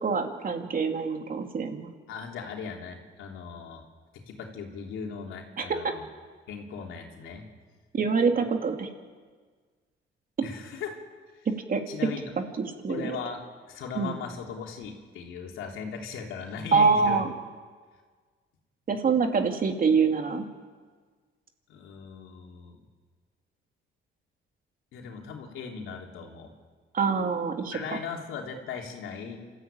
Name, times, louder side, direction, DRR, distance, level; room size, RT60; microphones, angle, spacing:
voice 1, 0.0-1.9 5.6-5.9 7.9-8.9 11.7-11.8 12.8-13.1 13.9-14.2 16.7-17.3 18.9-20.5 26.9-27.8, right 5 dB, 45° right, 4 dB, 2.7 m, -25 dB
voice 2, 2.1-3.8 4.1-6.0 6.5-7.5 10.4-11.0 11.9-12.3 12.9-13.4 13.7-17.2 21.7-22.8 24.9-26.5 27.7-29.4, left 6 dB, 85° left, 1 dB, 3.3 m, -38 dB
27.0 x 13.5 x 9.0 m, 1.5 s
cardioid pair, 90°, 20 cm